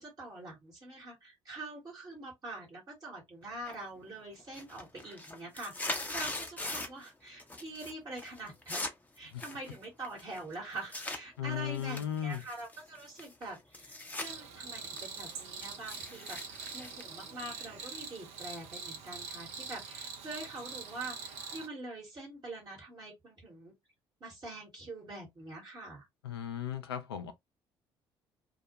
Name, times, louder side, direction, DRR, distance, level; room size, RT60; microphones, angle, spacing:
voice 1, 0.0-8.8 9.2-23.7 24.2-26.1, right 2 dB, 30° right, 1.1 m, -45 dB
sound 1, 3.7-4.1 4.4-7.1 7.4-7.9 8.2-11.2 11.7-14.3 14.7-17.8, left 2 dB, 10° left, 0.6 m, -41 dB
voice 2, 11.4-12.4 26.2-27.3, left 9 dB, 75° left, 0.4 m, -36 dB
Cricket, 14.2-21.7, right 5 dB, 60° right, 0.6 m, -44 dB
2.2 x 2.1 x 2.7 m
figure-of-eight pair, 50°, 13 cm